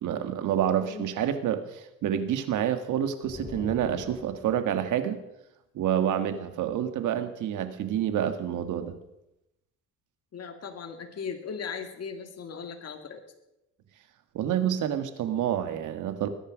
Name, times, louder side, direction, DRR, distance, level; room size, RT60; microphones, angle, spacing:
voice 1, 0.0-5.2 5.8-8.9 14.3-16.3, right 10 dB, 80° right, 9 dB, 1.8 m, -28 dB
sound 1, 3.2-4.9, left 3 dB, 30° left, 6.8 m, -42 dB
voice 2, 10.3-13.2, left 6 dB, 55° left, 5 dB, 2.3 m, -38 dB
20.5 x 10.0 x 6.3 m, 0.90 s
cardioid pair, 90°, 30 cm